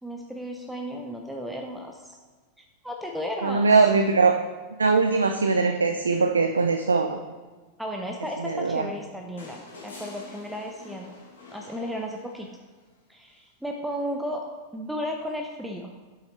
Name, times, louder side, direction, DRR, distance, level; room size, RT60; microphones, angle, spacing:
voice 1, 0.0-2.2 2.8-3.7 7.8-11.1 11.5-12.5 13.1-14.5 14.7-15.9, equal, 5° right, 2 dB, 0.7 m, -34 dB
voice 2, 3.4-4.3 4.8-7.2 8.4-8.9, right 4 dB, 75° right, 6 dB, 0.4 m, -21 dB
sound 1, 9.4-12.7 14.2-14.3, left 3 dB, 65° left, 1.9 m, -46 dB
7.7 x 5.8 x 4.2 m, 1.4 s
figure-of-eight pair, 90°, 0 cm